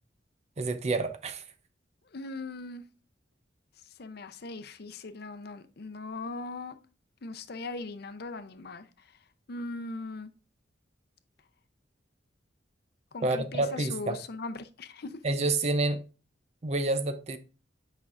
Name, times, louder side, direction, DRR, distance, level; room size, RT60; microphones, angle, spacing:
voice 1, 0.6-1.4 13.2-14.2 15.2-16.0 16.6-17.4, right 2 dB, 35° right, 0.6 m, -28 dB
voice 2, 2.1-2.8 4.0-6.8 7.2-8.9 9.5-10.3 13.1-15.2, left 3 dB, 60° left, 0.6 m, -39 dB
8.3 x 5.3 x 2.5 m
head